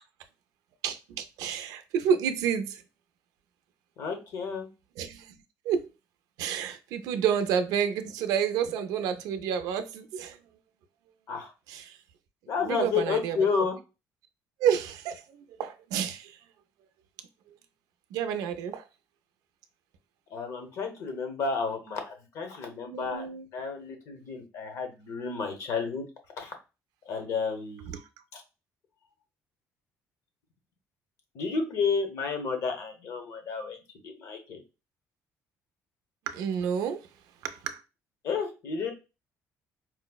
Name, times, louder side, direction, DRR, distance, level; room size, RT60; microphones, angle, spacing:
voice 1, 0.8-2.8 5.0-5.4 5.6-5.9 6.4-10.4 11.7-12.0 12.6-13.4 14.6-15.2 15.6-16.4 18.1-18.8 22.9-23.5 27.9-28.1 36.3-37.1 37.4-37.8, right 8 dB, 80° right, 0.4 m, -29 dB
voice 2, 4.0-4.7 11.3-11.5 12.5-13.8 20.3-23.2 23.5-26.1 26.4-26.5 27.1-28.0 28.3-28.4 31.3-33.8 34.0-34.6 38.2-38.9, left 5 dB, 55° left, 0.8 m, -31 dB
4.5 x 2.0 x 2.2 m
cardioid pair, 170°, 6 cm